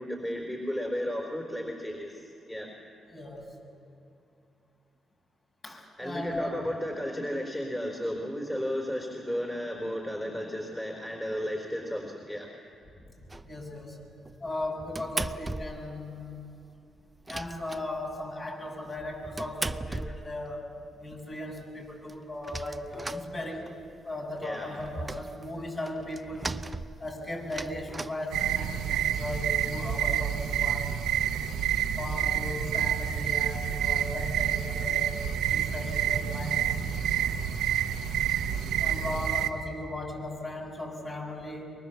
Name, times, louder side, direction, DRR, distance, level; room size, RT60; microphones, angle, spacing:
voice 1, 0.0-2.2 2.5-2.7 6.0-12.5 24.4-24.7 31.4-31.5, equal, 15° left, 1 dB, 4.0 m, -33 dB
voice 2, 3.1-3.6 5.6-6.6 13.0-13.1 13.4-14.1 14.4-16.6 17.3-23.7 24.0-26.6 27.0-30.9 32.0-36.8 38.8-41.6, left 1 dB, 40° left, 0 dB, 6.5 m, -37 dB
sound 1, 13.3-13.7 14.2-16.0 16.3-16.4 16.6-16.7 17.0-18.3 18.9-20.7 21.2-21.3 21.6-21.7 21.9-23.9 24.3-28.9, right 2 dB, 20° right, 0.7 m, -38 dB
sound 2, 28.3-39.5, right 9 dB, 90° right, 1.1 m, -28 dB
24.5 x 22.5 x 7.2 m, 2.8 s
cardioid pair, 70°, 0 cm